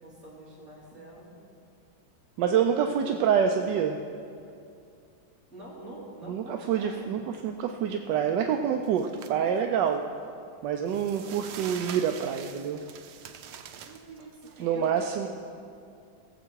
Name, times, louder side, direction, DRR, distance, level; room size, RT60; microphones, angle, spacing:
voice 1, 0.0-1.3 2.8-3.2 5.5-7.1 13.9-15.1, right 1 dB, 35° right, -7 dB, 3.7 m, -46 dB
voice 2, 2.4-4.0 6.3-10.1 10.6-12.8 14.6-15.3, right 8 dB, 70° right, 5 dB, 1.1 m, -27 dB
sound 1, 8.8-9.3 9.8-9.9 10.8-14.5, right 8 dB, 90° right, 1.6 m, -44 dB
18.0 x 7.7 x 4.7 m, 2.5 s
omnidirectional pair, 2.2 m